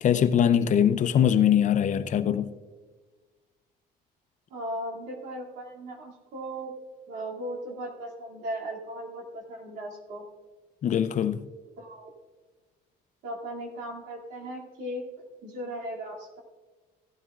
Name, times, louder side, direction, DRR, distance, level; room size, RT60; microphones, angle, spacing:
voice 1, 0.0-2.5 10.8-11.4, left 9 dB, 45° left, 0.6 m, -22 dB
voice 2, 4.5-6.7 7.1-10.2 11.8-12.1 13.2-15.0 15.4-16.4, right 1 dB, 90° right, 2.7 m, -37 dB
17.0 x 12.5 x 2.5 m
cardioid pair, 110°, 17 cm